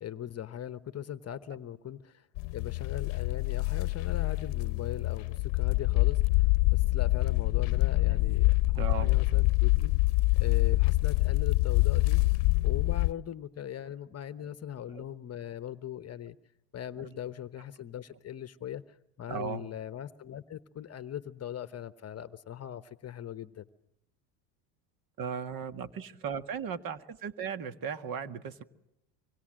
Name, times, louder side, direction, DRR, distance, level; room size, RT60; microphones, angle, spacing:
voice 1, 0.0-2.3 2.5-9.9 10.4-12.2 12.6-16.4 16.7-18.8 19.2-23.7, left 10 dB, 30° left, 13 dB, 1.0 m, -40 dB
sound 1, 2.4-13.1, left 22 dB, 65° left, 0.9 m, -26 dB
voice 2, 8.7-9.2 14.4-14.5 14.9-15.0 17.0-17.1 19.3-19.7 25.2-28.6, right 7 dB, 45° right, 11 dB, 1.8 m, -37 dB
25.5 x 24.5 x 7.7 m, 0.85 s
supercardioid pair, 105°, 48 cm